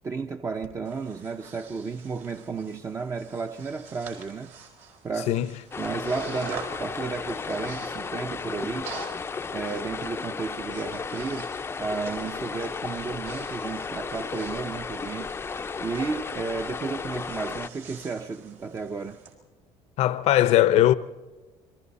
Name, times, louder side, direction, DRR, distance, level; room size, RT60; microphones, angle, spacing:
voice 1, 0.0-4.5 5.0-5.3 5.8-8.9 9.5-11.5 11.8-15.4 15.8-19.2, right 4 dB, 25° right, 0.7 m, -33 dB
Breathing, 0.6-19.3, right 5 dB, 75° right, 4.7 m, -47 dB
sound 1, 5.7-17.7, left 5 dB, 20° left, 0.6 m, -34 dB
voice 2, 20.0-20.9, left 13 dB, 60° left, 0.7 m, -19 dB
29.5 x 22.5 x 4.2 m
cardioid pair, 125°, 12 cm